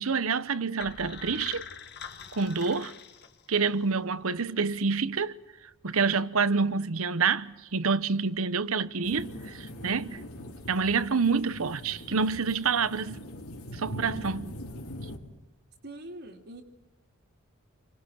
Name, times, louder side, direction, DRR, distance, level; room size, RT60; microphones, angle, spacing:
voice 1, 0.0-1.6 2.3-2.9 3.5-5.3 5.8-10.2 10.7-13.2 13.7-14.5, right 5 dB, 75° right, 1.0 m, -27 dB
sound 1, 0.8-3.8, left 6 dB, 50° left, 1.7 m, -43 dB
sound 2, 9.0-15.2, left 1 dB, 85° left, 4.1 m, -42 dB
voice 2, 15.8-16.6, right 1 dB, 55° right, 2.6 m, -43 dB
29.5 x 25.0 x 6.4 m
head